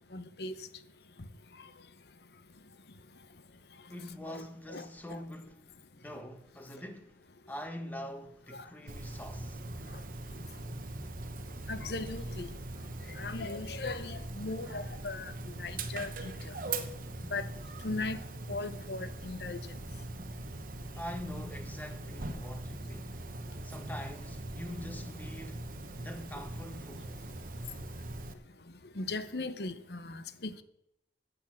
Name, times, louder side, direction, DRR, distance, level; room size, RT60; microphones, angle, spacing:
voice 1, 0.1-0.5 4.3-4.4 4.7-4.8 11.7-12.5 13.2-15.3 15.6-16.3 17.3-17.4 17.8-18.2 18.5-19.6 29.0-30.6, left 3 dB, 65° left, 0.9 m, -37 dB
voice 2, 3.9-5.6 5.9-7.2 7.5-9.6 21.0-23.3 23.6-25.7 26.0-27.1, left 1 dB, 10° left, 1.2 m, -44 dB
Dog, 8.9-28.3, right 2 dB, 50° right, 1.0 m, -41 dB
10.5 x 8.1 x 7.4 m
head